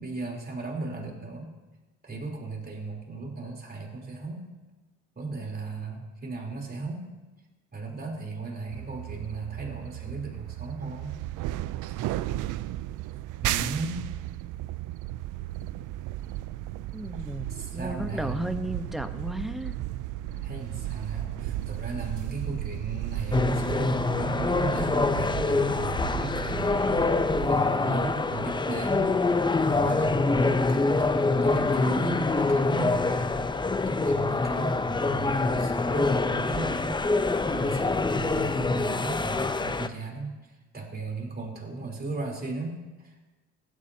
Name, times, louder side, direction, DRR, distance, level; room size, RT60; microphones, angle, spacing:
voice 1, 0.0-1.5 2.0-4.4 5.2-7.0 7.7-11.2 11.9-12.1 13.4-14.0 17.5-18.4 20.3-27.1 27.5-29.2 29.7-40.3 40.7-43.3, right 3 dB, 30° right, -1 dB, 3.6 m, -36 dB
sound 1, 8.7-27.6, right 14 dB, 75° right, 0.5 m, -35 dB
voice 2, 16.9-19.7, right 1 dB, ahead, 8 dB, 1.0 m, -34 dB
sound 2, 23.3-39.9, left 3 dB, 15° left, 0.6 m, -25 dB
16.0 x 12.0 x 2.8 m, 1.1 s
supercardioid pair, 70°, 31 cm